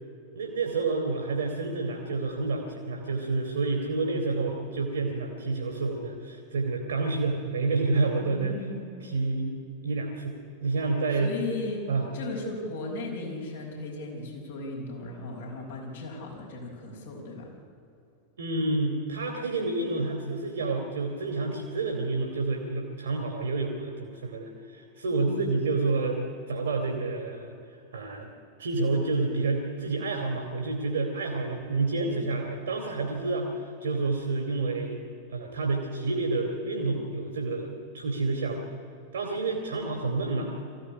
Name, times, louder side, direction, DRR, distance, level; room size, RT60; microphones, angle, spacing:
voice 1, 0.3-8.6 9.0-9.5 9.8-11.3 11.9-12.1 18.4-27.5 27.9-28.3 28.6-35.0 35.3-38.7 39.1-40.5, right 3 dB, 65° right, 2 dB, 2.5 m, -29 dB
voice 2, 8.2-9.1 11.2-17.5 25.1-25.8, left 3 dB, 60° left, 0 dB, 5.2 m, -37 dB
22.0 x 15.5 x 9.8 m, 2.6 s
figure-of-eight pair, 90°, 0 cm